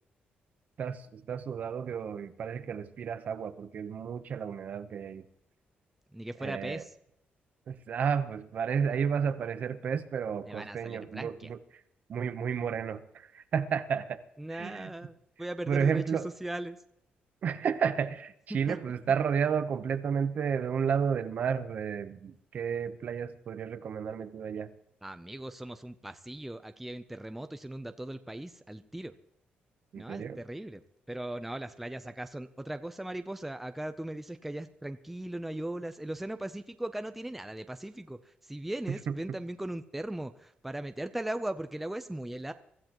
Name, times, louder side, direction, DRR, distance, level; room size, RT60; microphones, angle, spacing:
voice 1, 0.8-5.2 6.4-6.8 7.7-11.6 12.1-14.2 14.5-14.9 15.7-16.3 17.4-24.7 29.9-30.4 38.9-39.2, right 7 dB, 45° right, 11 dB, 0.8 m, -32 dB
voice 2, 6.1-6.9 10.5-11.5 14.4-16.0 16.4-16.8 18.7-18.8 25.0-29.1 29.9-30.8 31.1-42.5, right 1 dB, 5° right, 8 dB, 0.5 m, -38 dB
23.5 x 14.5 x 3.0 m, 0.74 s
cardioid pair, 170°, 4 cm